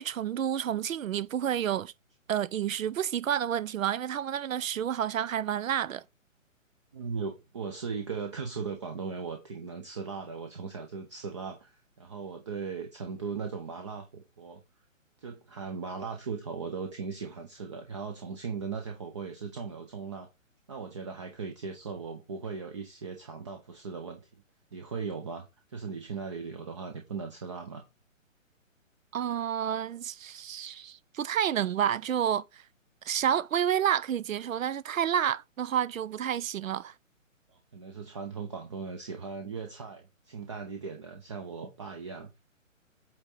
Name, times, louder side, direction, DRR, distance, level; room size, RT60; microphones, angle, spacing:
voice 1, 0.0-1.9 2.3-6.0 29.1-32.6 33.0-36.9, right 9 dB, 75° right, 0.6 m, -29 dB
voice 2, 6.9-14.6 15.2-20.3 20.7-24.2 24.7-27.9 37.5-42.3, right 5 dB, 25° right, 0.5 m, -38 dB
8.6 x 3.5 x 4.1 m
hypercardioid pair, 145°, 40 cm